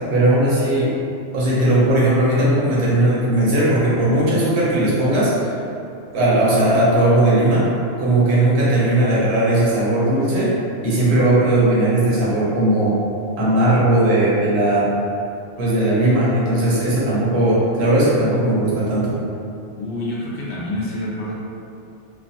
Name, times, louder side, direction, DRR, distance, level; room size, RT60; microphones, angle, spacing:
voice 1, 0.1-0.9 1.3-5.5 6.1-7.7 8.0-10.6 10.8-13.0 13.4-14.9 15.6-19.2, right 1 dB, 65° right, -7 dB, 1.0 m, -17 dB
voice 2, 19.7-21.3, left 1 dB, 55° left, -6 dB, 0.8 m, -27 dB
3.0 x 2.3 x 2.7 m, 2.6 s
omnidirectional pair, 1.2 m